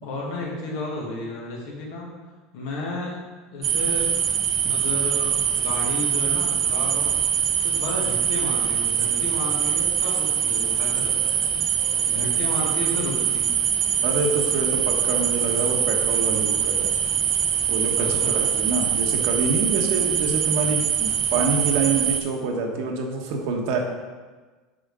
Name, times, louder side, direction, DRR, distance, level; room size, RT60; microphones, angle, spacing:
voice 1, 0.0-2.1 2.5-3.2 3.5-4.1 4.6-7.1 7.6-11.4 12.0-13.6 18.0-18.5, left 2 dB, 80° left, -3 dB, 2.2 m, -32 dB
sound 1, 3.6-22.2, right 8 dB, 50° right, 0.7 m, -23 dB
voice 2, 14.0-16.9 17.7-23.8, right 4 dB, 70° right, 2 dB, 1.2 m, -26 dB
6.3 x 5.0 x 4.9 m, 1.3 s
supercardioid pair, 125°, 0 cm